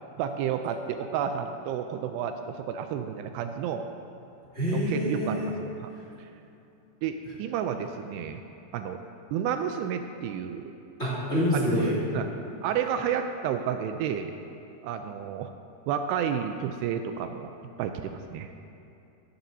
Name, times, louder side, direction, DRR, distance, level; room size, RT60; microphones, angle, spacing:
voice 1, 0.2-3.9 4.7-5.9 7.0-8.4 8.7-9.0 9.3-10.7 11.5-12.3 12.6-14.4 14.8-15.5 15.9-17.5 17.8-18.5, right 8 dB, 85° right, 7 dB, 2.6 m, -31 dB
voice 2, 4.5-5.5 11.0-12.0, equal, 20° left, -8 dB, 2.1 m, -26 dB
15.5 x 13.0 x 2.7 m, 2.8 s
omnidirectional pair, 4.9 m